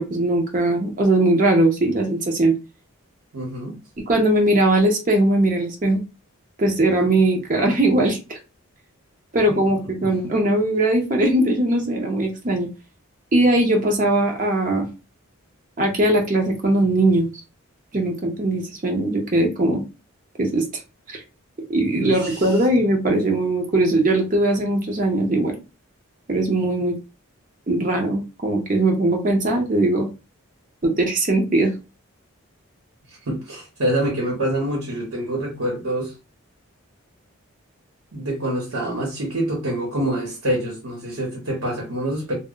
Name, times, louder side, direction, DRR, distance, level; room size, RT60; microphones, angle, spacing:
voice 1, 0.0-2.5 4.1-6.0 6.6-8.4 9.3-12.7 13.3-14.9 15.8-17.3 17.9-19.8 20.4-20.7 21.1-21.2 21.7-25.6 26.3-27.0 27.7-30.1 30.8-31.7, right 1 dB, 35° right, 0.5 m, -20 dB
voice 2, 3.3-3.8 9.5-9.6 10.0-10.1 22.0-22.7 33.2-36.1 38.1-42.3, right 1 dB, 80° right, 0.9 m, -26 dB
2.1 x 2.0 x 3.6 m
head